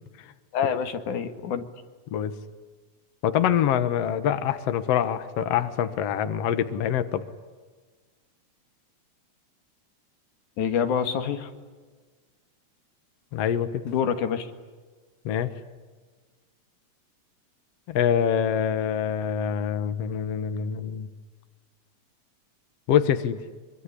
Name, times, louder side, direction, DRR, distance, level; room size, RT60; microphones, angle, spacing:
voice 1, 0.5-1.7 10.6-11.5 13.8-14.5, left 7 dB, 90° left, 8 dB, 3.3 m, -26 dB
voice 2, 3.2-7.2 13.3-13.8 15.3-15.5 17.9-21.1 22.9-23.4, left 9 dB, 60° left, 10 dB, 2.3 m, -25 dB
25.0 x 24.0 x 9.9 m, 1.4 s
omnidirectional pair, 3.4 m